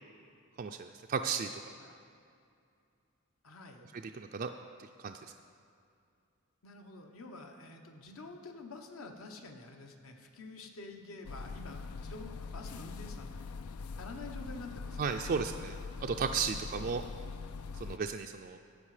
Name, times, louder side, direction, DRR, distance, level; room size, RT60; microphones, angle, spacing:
voice 1, 0.6-1.7 4.1-4.5 4.8-5.2 15.0-15.7 16.0-17.0 17.8-18.6, right 5 dB, 40° right, 4 dB, 0.3 m, -34 dB
voice 2, 3.4-3.9 6.6-13.4 14.0-15.3, left 2 dB, 70° left, 4 dB, 1.1 m, -48 dB
sound 1, 11.2-18.0, left 4 dB, 85° left, 0.4 m, -43 dB
14.0 x 8.4 x 4.9 m, 2.5 s
head